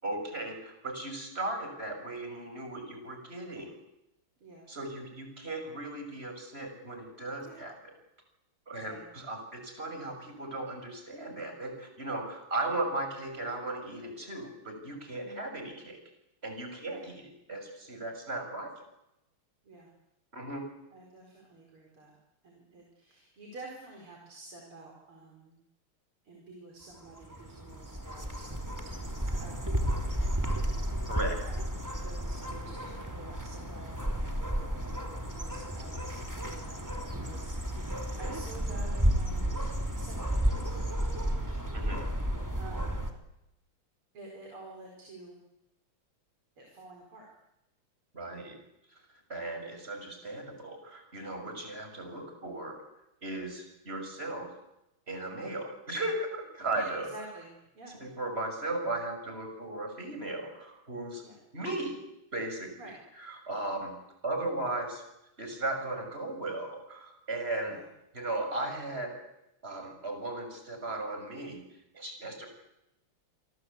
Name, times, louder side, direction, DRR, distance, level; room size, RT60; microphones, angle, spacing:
voice 1, 0.0-3.7 4.7-7.7 8.7-16.0 16.4-17.1 17.5-18.7 20.3-20.6 31.1-31.4 41.7-42.0 48.1-48.6 49.3-52.8 53.2-54.6 55.1-57.1 58.0-61.2 61.5-62.0 62.3-62.7 63.2-63.9 64.2-65.0 65.4-67.8 68.1-69.1 69.6-71.6 71.9-72.5, right 2 dB, 25° right, 5 dB, 6.4 m, -36 dB
voice 2, 4.4-4.7 7.4-7.6 8.8-9.1 15.2-15.7 16.8-17.0 19.6-19.9 20.9-22.2 22.4-25.6 26.2-31.6 32.0-36.8 37.2-43.0 44.1-45.4 46.6-47.3 56.7-58.0 61.2-61.4 62.8-62.9 67.6-67.8, right 2 dB, 75° right, 0 dB, 5.7 m, -50 dB
sound 1, 27.0-43.1, equal, 10° right, 2.8 m, -32 dB
28.5 x 24.0 x 8.4 m, 0.88 s
omnidirectional pair, 2.4 m